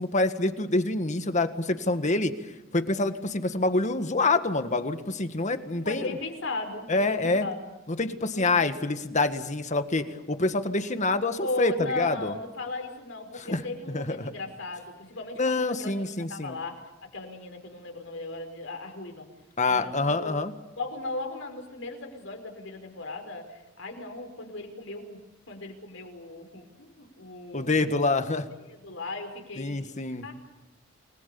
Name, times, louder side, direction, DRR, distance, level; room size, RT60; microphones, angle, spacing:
voice 1, 0.0-2.3 2.7-6.1 6.9-7.5 8.0-12.3 13.5-13.6 13.9-14.2 15.4-16.5 19.6-20.5 27.5-28.4 29.6-30.2, left 3 dB, 40° left, 9 dB, 1.7 m, -26 dB
voice 2, 5.8-7.7 8.3-8.5 11.4-19.3 19.6-20.4 20.8-25.2 25.5-28.2 28.6-29.9 30.2-30.3, left 2 dB, 70° left, 4 dB, 5.5 m, -37 dB
29.5 x 20.5 x 7.1 m, 1.0 s
head